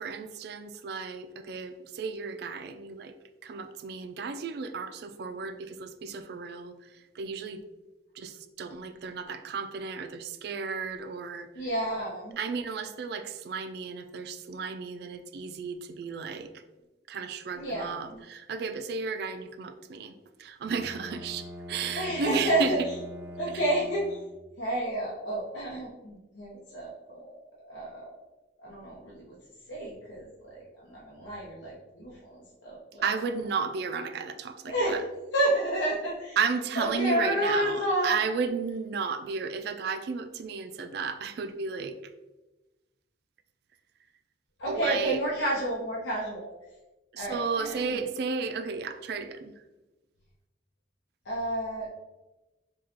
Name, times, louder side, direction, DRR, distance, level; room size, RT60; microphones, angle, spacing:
voice 1, 0.0-3.1 3.4-6.7 7.2-7.6 8.2-11.7 12.4-16.5 17.1-22.7 33.0-35.0 36.4-42.0 44.7-45.2 47.1-49.5, right 5 dB, 60° right, 9 dB, 0.3 m, -33 dB
voice 2, 11.5-12.4 17.5-18.2 21.9-22.9 23.4-24.2 24.6-27.3 27.7-28.1 28.6-29.3 29.7-33.1 34.7-35.0 35.3-36.4 36.8-38.1 44.6-46.5 47.2-48.0 51.2-51.9, right 1 dB, 80° left, -5 dB, 0.7 m, -30 dB
Bowed string instrument, 20.6-24.6, equal, 10° right, 1.3 m, -43 dB
4.9 x 2.3 x 2.9 m, 1.1 s
head